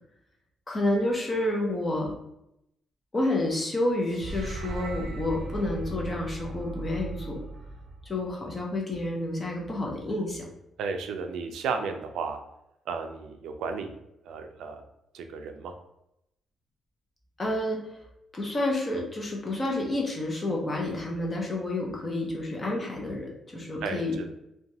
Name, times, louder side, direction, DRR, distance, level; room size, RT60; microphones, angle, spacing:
voice 1, 0.7-2.1 3.1-7.4 8.0-10.4 17.4-18.0 18.3-24.2, left 1 dB, 20° left, -1 dB, 0.6 m, -29 dB
sound 1, 4.1-8.4, right 2 dB, 35° right, 0.6 m, -37 dB
voice 2, 10.8-12.4 12.9-14.0 14.2-14.8 15.1-15.7 23.8-24.3, right 5 dB, 85° right, 6 dB, 0.3 m, -33 dB
2.9 x 2.2 x 2.7 m, 0.82 s
cardioid pair, 165°, 0 cm